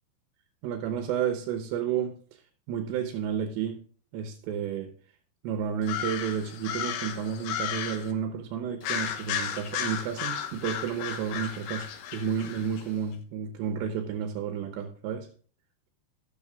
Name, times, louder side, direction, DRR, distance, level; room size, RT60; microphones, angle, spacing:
voice 1, 0.6-2.1 2.7-3.8 4.1-4.9 5.4-11.9 12.1-15.3, right 8 dB, 80° right, 5 dB, 3.1 m, -31 dB
sound 1, 5.8-8.1 8.8-12.8, left 9 dB, 90° left, 3.3 m, -34 dB
13.0 x 6.9 x 3.5 m, 0.43 s
omnidirectional pair, 5.0 m